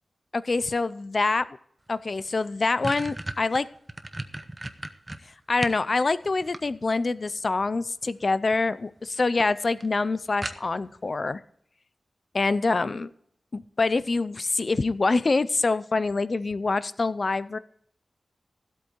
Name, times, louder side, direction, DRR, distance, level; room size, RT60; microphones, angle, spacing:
voice 1, 0.3-1.5 1.9-3.7 5.5-11.4 12.3-13.1 13.5-17.6, left 3 dB, 40° left, 16 dB, 0.5 m, -25 dB
sound 1, 2.0-2.1 2.4-5.9 6.2-7.1 8.2-8.6 9.0-9.1 9.4-9.5 9.8-9.9 10.4-11.0, right 1 dB, 20° right, 0.9 m, -36 dB
15.0 x 8.4 x 4.5 m, 0.68 s
wide cardioid pair, 125°, 0 cm